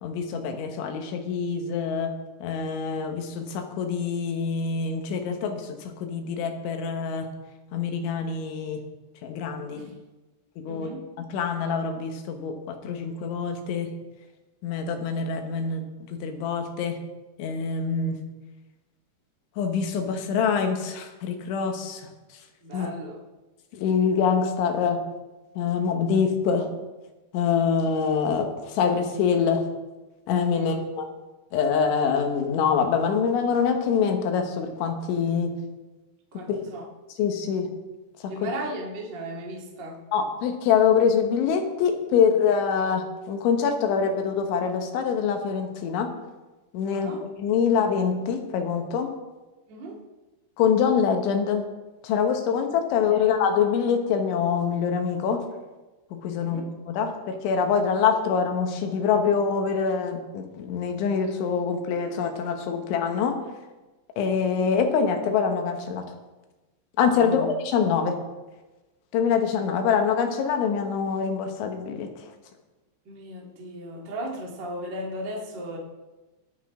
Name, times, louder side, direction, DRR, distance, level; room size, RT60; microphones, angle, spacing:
voice 1, 0.0-2.1 2.4-7.3 7.7-8.8 9.2-9.8 10.6-10.9 11.2-13.9 14.6-15.8 16.1-17.0 17.4-18.2 19.6-22.1 22.7-22.9 23.7-25.0 25.6-26.7 27.3-29.6 30.3-31.1 31.5-35.5 36.5-36.6 37.2-37.7 38.2-38.5 40.1-46.1 46.7-47.1 47.4-49.1 50.6-51.6 52.0-55.4 56.1-63.4 64.2-66.0 67.0-68.2 69.1-72.3, left 6 dB, 75° left, 5 dB, 3.6 m, -25 dB
voice 2, 10.7-11.1 22.6-23.2 30.5-30.8 36.3-36.8 38.3-40.0 46.9-47.2 49.7-50.0 53.1-53.2 56.4-56.7 67.1-67.5 73.1-75.8, right 1 dB, 35° right, -1 dB, 1.8 m, -36 dB
23.5 x 8.3 x 3.7 m, 1.1 s
omnidirectional pair, 5.6 m